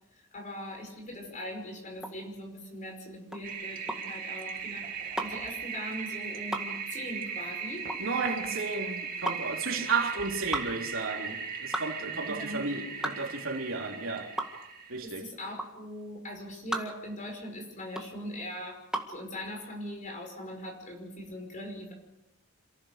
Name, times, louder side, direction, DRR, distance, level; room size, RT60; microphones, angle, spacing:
voice 1, 0.3-7.9 8.5-8.6 12.2-13.1 15.0-18.8 19.1-21.9, equal, 35° left, 5.6 m, -41 dB
sound 1, 2.0-19.2, right 1 dB, 5° right, 1.8 m, -38 dB
Toilet flush, 3.4-15.0, right 6 dB, 40° right, 2.4 m, -38 dB
voice 2, 8.0-14.3 14.9-15.3, right 4 dB, 65° right, 3.6 m, -33 dB
28.0 x 15.0 x 6.8 m
head